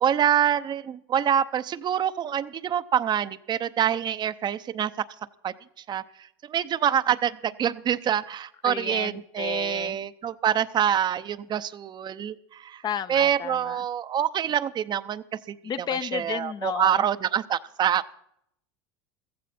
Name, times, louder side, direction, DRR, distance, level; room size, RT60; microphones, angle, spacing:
voice 1, 0.0-4.9 5.4-5.5 5.9-6.0 6.4-12.8 13.1-15.5 16.1-18.1, right 9 dB, 35° right, 13 dB, 0.7 m, -26 dB
voice 2, 8.6-10.0 12.8-13.8 15.6-17.1, left 8 dB, 35° left, 13 dB, 0.7 m, -32 dB
15.0 x 15.0 x 4.3 m, 0.73 s
supercardioid pair, 105°, 13 cm